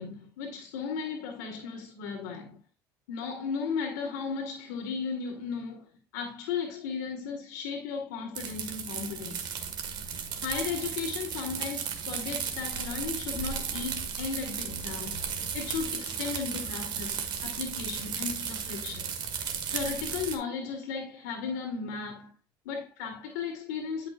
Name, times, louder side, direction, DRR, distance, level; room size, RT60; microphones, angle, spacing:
voice 1, 0.0-2.6 3.1-5.9 6.1-9.5 10.4-15.3 15.5-19.1 19.7-22.3 22.7-24.1, left 5 dB, 90° left, 1.8 m, -35 dB
sound 1, 8.4-20.4, right 7 dB, 55° right, 1.8 m, -35 dB
10.0 x 5.8 x 2.5 m
supercardioid pair, 95°, 9 cm